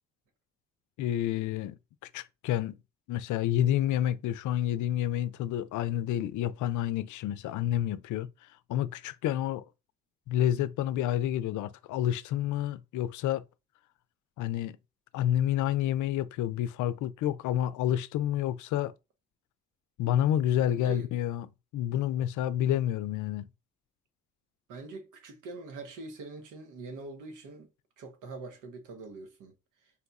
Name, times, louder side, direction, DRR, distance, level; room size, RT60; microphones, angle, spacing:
voice 1, 1.0-2.8 3.1-8.3 8.7-9.6 10.3-13.4 14.4-14.8 15.1-18.9 20.0-21.5 21.7-23.5, left 11 dB, 75° left, 0.5 m, -29 dB
voice 2, 20.6-21.1 24.7-27.7 28.0-29.5, right 3 dB, 90° right, 1.1 m, -43 dB
4.1 x 2.3 x 4.1 m
cardioid pair, 90°, 30 cm